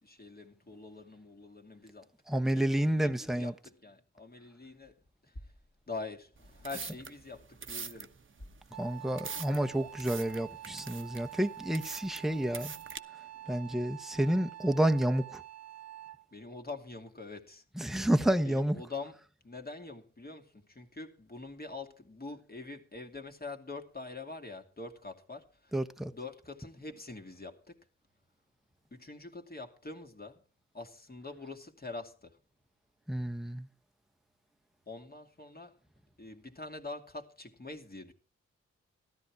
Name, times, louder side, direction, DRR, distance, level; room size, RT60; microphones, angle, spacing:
voice 1, 0.0-2.1 2.4-2.9 3.2-5.0 5.3-5.4 5.9-8.1 8.9-9.1 16.3-17.6 18.2-19.2 19.4-25.7 26.1-27.8 28.9-30.4 30.7-32.4 34.9-35.7 36.2-38.1, left 3 dB, 30° left, 2.4 m, -45 dB
voice 2, 2.3-3.5 8.8-12.7 13.5-15.4 17.7-18.8 25.7-26.1 33.1-33.7, right 1 dB, ahead, 1.1 m, -30 dB
sound 1, 6.4-13.0, right 6 dB, 45° right, 1.0 m, -44 dB
Wind instrument woodwind instrument, 8.7-16.3, right 12 dB, 65° right, 0.6 m, -47 dB
13.5 x 12.0 x 4.7 m
cardioid pair, 50°, 29 cm